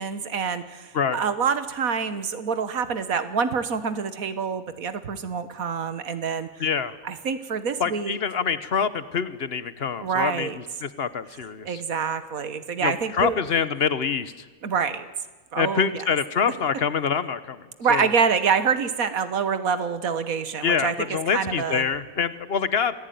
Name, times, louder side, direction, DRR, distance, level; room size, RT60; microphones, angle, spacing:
voice 1, 0.0-6.5 7.0-8.2 10.0-10.6 11.6-13.4 14.6-15.1 15.5-16.0 17.8-21.9, right 6 dB, 70° right, 12 dB, 1.7 m, -26 dB
voice 2, 6.6-6.9 7.8-11.7 12.8-14.3 15.6-18.1 20.6-22.9, left 6 dB, 45° left, 14 dB, 1.1 m, -26 dB
26.5 x 15.5 x 9.3 m, 1.3 s
omnidirectional pair, 1.5 m